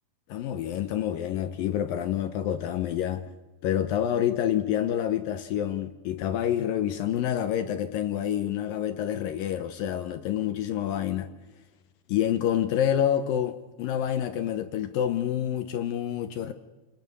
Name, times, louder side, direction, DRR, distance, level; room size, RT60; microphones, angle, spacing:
voice 1, 0.3-3.3 3.6-11.3 12.1-16.5, left 10 dB, 75° left, 2.1 m, -28 dB
29.0 x 19.5 x 6.9 m
omnidirectional pair, 5.0 m